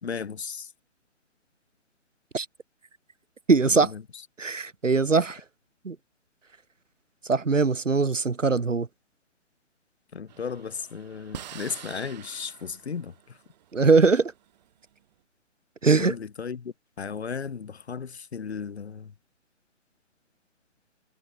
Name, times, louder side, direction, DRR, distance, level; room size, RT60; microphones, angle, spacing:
voice 1, 0.0-0.7 3.7-4.0 10.1-13.4 16.0-19.1, left 6 dB, 55° left, 3.5 m, -35 dB
voice 2, 3.5-3.9 4.4-5.4 5.8-6.0 7.2-8.9 13.7-14.3 15.8-16.2, right 4 dB, 75° right, 2.5 m, -21 dB
sound 1, 10.3-14.9, right 12 dB, 35° right, 5.3 m, -46 dB
figure-of-eight pair, 145°, 37 cm